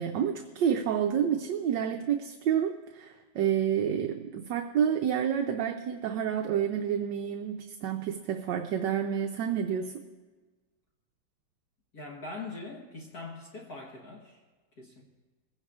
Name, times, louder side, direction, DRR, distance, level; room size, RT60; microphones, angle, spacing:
voice 1, 0.0-9.9, right 8 dB, 70° right, 4 dB, 1.2 m, -29 dB
voice 2, 11.9-14.4 14.8-15.0, left 3 dB, 55° left, -1 dB, 1.7 m, -42 dB
20.0 x 16.5 x 2.4 m, 1.3 s
omnidirectional pair, 2.2 m